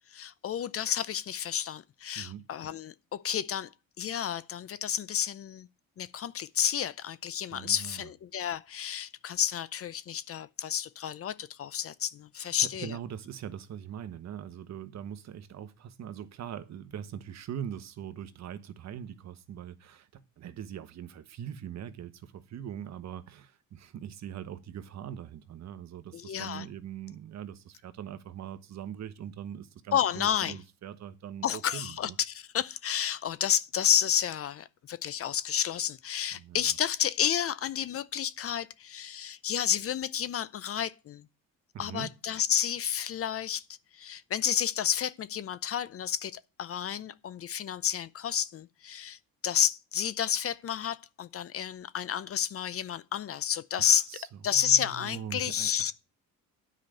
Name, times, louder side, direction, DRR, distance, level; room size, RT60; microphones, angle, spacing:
voice 1, 0.1-3.7 4.0-5.7 6.0-13.0 26.1-26.7 29.9-30.6 31.4-41.2 41.8-43.6 43.9-49.2 49.4-54.1 54.4-55.9, left 9 dB, 40° left, 0.6 m, -30 dB
voice 2, 2.1-2.5 7.5-8.1 12.4-32.2 36.3-36.7 41.7-42.1 53.8-55.9, right 9 dB, 45° right, 1.1 m, -42 dB
9.7 x 5.1 x 7.7 m
cardioid pair, 110°, 36 cm